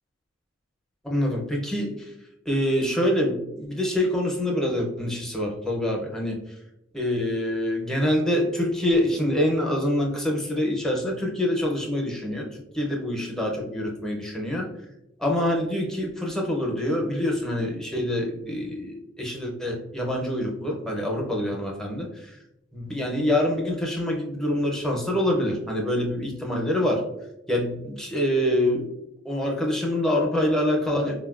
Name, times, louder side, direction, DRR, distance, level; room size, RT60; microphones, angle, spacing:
voice 1, 1.0-2.1 2.5-6.4 6.9-14.7 15.2-22.4 22.7-27.0 27.5-28.9 29.2-31.2, left 1 dB, 5° left, 0 dB, 0.5 m, -25 dB
4.0 x 2.1 x 2.3 m, 0.86 s
head